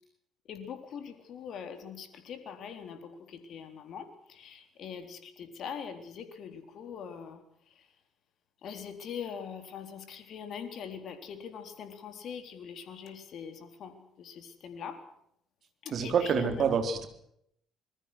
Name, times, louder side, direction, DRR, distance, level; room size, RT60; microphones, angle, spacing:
voice 1, 0.5-7.4 8.6-15.0 15.8-16.8, left 7 dB, 55° left, 9 dB, 3.8 m, -42 dB
voice 2, 15.9-17.1, right 6 dB, 50° right, 8 dB, 4.0 m, -27 dB
26.5 x 21.5 x 6.4 m, 0.72 s
hypercardioid pair, 50°, 0 cm